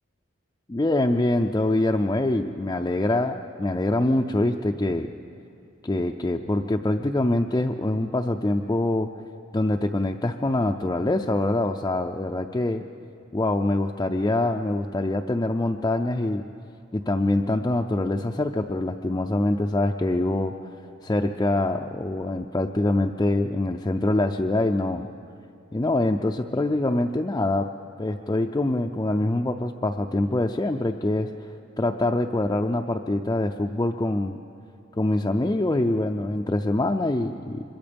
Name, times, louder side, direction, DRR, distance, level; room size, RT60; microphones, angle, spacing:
voice 1, 0.7-5.1 5.8-9.1 9.5-12.8 13.3-16.4 16.9-20.5 21.0-25.1 25.7-27.7 28.0-34.4 35.0-37.6, left 2 dB, 20° left, 2 dB, 0.4 m, -24 dB
25.0 x 22.0 x 5.2 m, 2.5 s
head